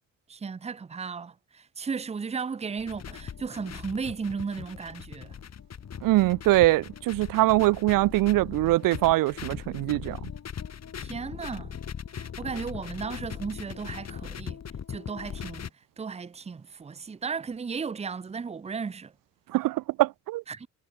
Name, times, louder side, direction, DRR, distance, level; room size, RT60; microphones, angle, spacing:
voice 1, 0.3-5.3 11.0-11.8 12.1-14.6 14.9-15.7 16.0-19.1 20.5-20.7, right 5 dB, 20° right, 0.6 m, -35 dB
sound 1, 2.8-15.7, left 8 dB, 50° left, 3.6 m, -40 dB
voice 2, 6.0-10.2 19.5-20.4, right 18 dB, 80° right, 0.5 m, -23 dB
cardioid pair, 95°, 33 cm